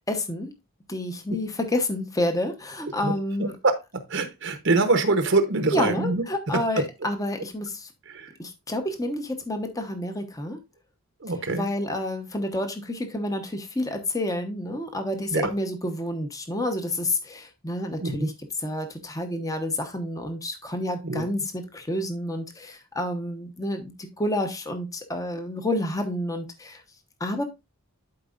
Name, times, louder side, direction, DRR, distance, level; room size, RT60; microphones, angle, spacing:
voice 1, 0.1-0.5 0.9-3.5 5.7-7.9 8.4-10.6 11.5-18.3 18.6-26.8 27.2-27.4, left 1 dB, 15° left, 6 dB, 0.9 m, -29 dB
voice 2, 4.1-6.2 6.5-6.6 8.1-8.3 11.2-11.6 15.3-15.5 18.0-18.3 21.0-21.2, right 3 dB, 55° right, 7 dB, 0.9 m, -24 dB
12.0 x 4.7 x 2.5 m, 0.23 s
head